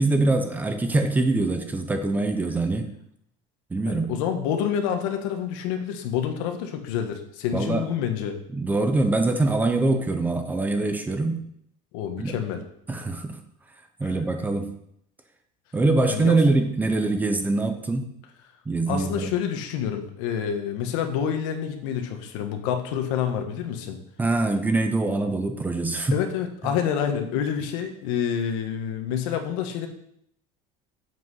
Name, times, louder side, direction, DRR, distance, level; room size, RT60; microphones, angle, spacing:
voice 1, 0.0-2.9 3.7-4.1 7.5-7.8 8.5-11.4 12.2-12.4 12.9-13.4 14.0-14.7 15.7-18.0 18.7-19.3 24.2-26.1, right 2 dB, 10° right, 6 dB, 0.8 m, -23 dB
voice 2, 3.8-8.4 11.9-12.6 14.0-14.1 16.0-16.4 18.9-24.0 26.1-29.9, left 8 dB, 80° left, 6 dB, 1.6 m, -28 dB
8.3 x 7.8 x 5.7 m, 0.71 s
cardioid pair, 170°, 16 cm